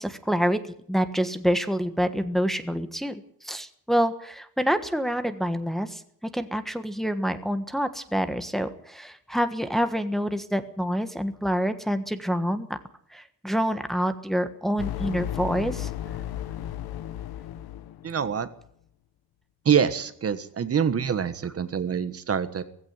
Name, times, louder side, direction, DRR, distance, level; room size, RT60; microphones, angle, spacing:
voice 1, 0.0-6.0 6.3-12.7 13.1-15.9, equal, ahead, 9 dB, 1.4 m, -27 dB
sound 1, 14.8-18.4, left 11 dB, 85° left, 1.2 m, -34 dB
voice 2, 18.0-18.5 19.6-22.6, right 7 dB, 40° right, 12 dB, 1.4 m, -25 dB
17.5 x 16.0 x 9.4 m, 0.66 s
cardioid pair, 145°, 36 cm